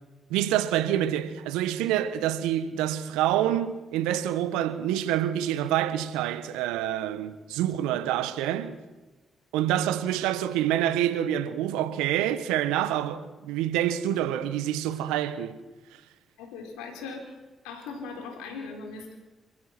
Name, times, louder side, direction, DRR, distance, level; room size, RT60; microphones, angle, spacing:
voice 1, 0.3-8.8 9.5-15.6, right 11 dB, 85° right, 1.3 m, -27 dB
voice 2, 16.4-17.3 17.6-19.2, left 4 dB, 85° left, 4.6 m, -39 dB
27.5 x 15.5 x 6.1 m
hypercardioid pair, 45°, 0 cm